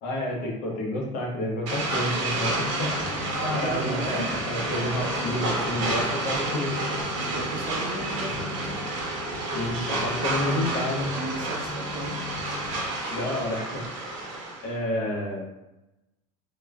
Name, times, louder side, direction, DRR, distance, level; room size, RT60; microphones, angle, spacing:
voice 1, 0.0-2.9 3.4-6.8 9.5-11.1 13.1-13.8 14.6-15.5, left 1 dB, 70° left, -1 dB, 1.0 m, -30 dB
sound 1, 1.7-14.7, right 2 dB, 90° right, 1.0 m, -30 dB
sound 2, 2.5-12.8, left 4 dB, 40° left, 1.0 m, -41 dB
voice 2, 3.5-4.3 7.3-8.8 10.4-12.2, right 3 dB, 55° right, 0 dB, 0.8 m, -35 dB
3.4 x 3.0 x 2.3 m, 0.97 s
supercardioid pair, 115°, 16 cm